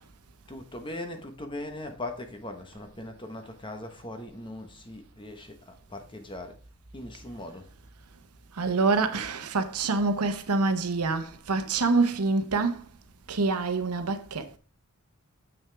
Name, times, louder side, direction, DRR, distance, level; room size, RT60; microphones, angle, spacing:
voice 1, 0.5-6.6 6.9-7.7, left 1 dB, 20° left, 1.1 m, -40 dB
voice 2, 8.5-12.8 13.3-14.6, right 3 dB, 85° right, 0.9 m, -26 dB
7.3 x 6.0 x 3.4 m
head